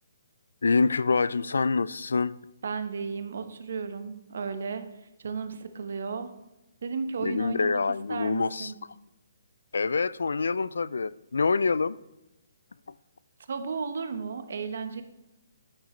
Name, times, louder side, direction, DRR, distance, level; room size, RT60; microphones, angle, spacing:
voice 1, 0.6-2.4 7.2-8.7 9.7-12.0, left 4 dB, 80° left, 19 dB, 0.3 m, -26 dB
voice 2, 2.6-4.8 5.2-6.3 6.8-7.8 8.1-8.8 13.5-15.0, right 5 dB, 65° right, 9 dB, 1.1 m, -34 dB
9.2 x 8.5 x 3.2 m, 0.97 s
hypercardioid pair, 150°, 0 cm